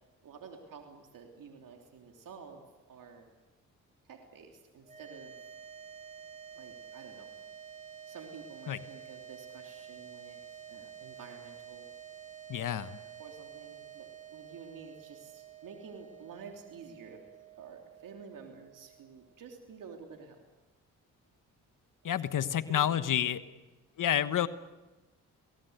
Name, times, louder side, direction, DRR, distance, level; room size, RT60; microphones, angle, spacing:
voice 1, 0.2-2.6 2.9-3.3 4.0-5.3 6.5-7.3 8.1-11.9 13.2-17.2 17.6-20.4 22.0-22.1 22.7-23.0, right 5 dB, 65° right, 2 dB, 3.3 m, -50 dB
sound 1, 4.8-19.3, right 8 dB, 20° right, 7.2 m, -50 dB
voice 2, 12.5-13.0 22.0-23.4 24.0-24.5, left 10 dB, 65° left, 13 dB, 1.3 m, -29 dB
27.0 x 19.0 x 8.1 m, 1.1 s
supercardioid pair, 60°, 34 cm